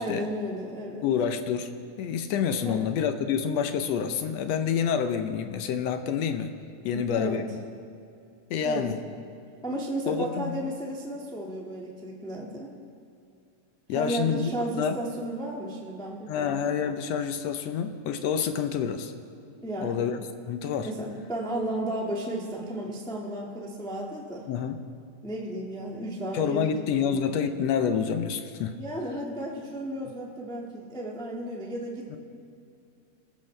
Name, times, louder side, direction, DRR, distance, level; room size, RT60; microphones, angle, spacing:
voice 1, 0.0-1.1 2.6-2.9 6.8-7.4 8.6-8.9 9.6-12.7 13.9-16.5 19.6-20.1 20.8-24.5 25.2-27.2 28.8-32.2, right 1 dB, 5° left, -2 dB, 0.9 m, -34 dB
voice 2, 1.0-1.7 2.0-6.5 6.8-7.4 8.5-9.0 10.1-10.7 13.9-15.0 16.3-19.1 19.8-20.2 20.5-20.9 24.5-24.8 26.3-28.8 32.1-32.2, left 7 dB, 70° left, 8 dB, 1.8 m, -28 dB
28.0 x 14.0 x 3.3 m, 2.5 s
omnidirectional pair, 3.3 m